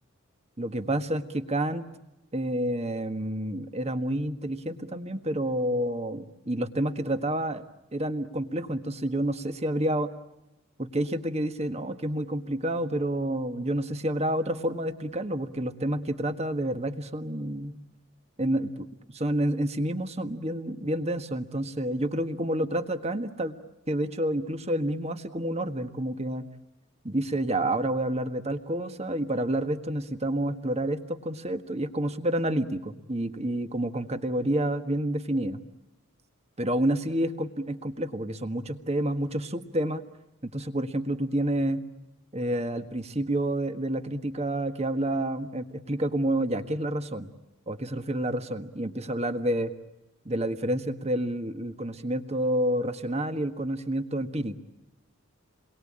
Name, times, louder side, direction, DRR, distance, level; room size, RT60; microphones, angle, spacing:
voice 1, 0.6-1.9 2.3-7.6 7.9-10.1 10.8-17.8 18.4-18.8 19.1-23.5 23.9-26.5 27.0-35.6 36.6-40.0 40.4-41.8 42.3-47.3 47.7-49.7 50.2-54.6, right 1 dB, 30° right, 8 dB, 1.6 m, -29 dB
29.0 x 22.0 x 8.8 m, 0.94 s
head